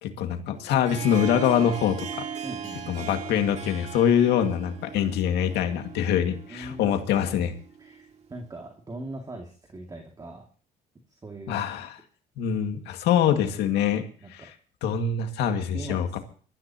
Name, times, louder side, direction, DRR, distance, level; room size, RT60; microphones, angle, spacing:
voice 1, 0.0-2.3 2.9-7.5 11.5-11.9 12.4-14.0 14.3-14.4 14.8-16.2, left 9 dB, 85° left, 6 dB, 2.0 m, -24 dB
Harp, 0.6-8.3, right 6 dB, 40° right, 2.2 m, -39 dB
voice 2, 2.4-3.1 6.5-7.0 7.8-10.5 11.1-11.9 14.2-14.3 15.7-16.2, right 2 dB, 20° right, 1 dB, 2.3 m, -40 dB
23.0 x 13.5 x 2.9 m, 0.43 s
cardioid pair, 110°, 17 cm